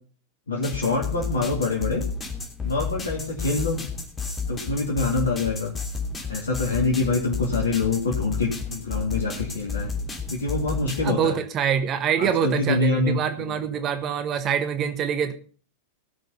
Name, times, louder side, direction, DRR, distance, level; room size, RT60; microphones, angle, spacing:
voice 1, 0.5-2.0 2.6-3.8 4.5-5.7 6.3-9.9 10.3-11.4 12.2-13.2 13.5-13.6, left 3 dB, 70° left, -3 dB, 2.9 m, -25 dB
sound 1, 0.6-11.1, left 4 dB, 20° left, 2.9 m, -31 dB
voice 2, 11.0-15.3, right 8 dB, 30° right, 9 dB, 1.3 m, -25 dB
17.5 x 6.7 x 5.5 m, 0.40 s
figure-of-eight pair, 90°, 0 cm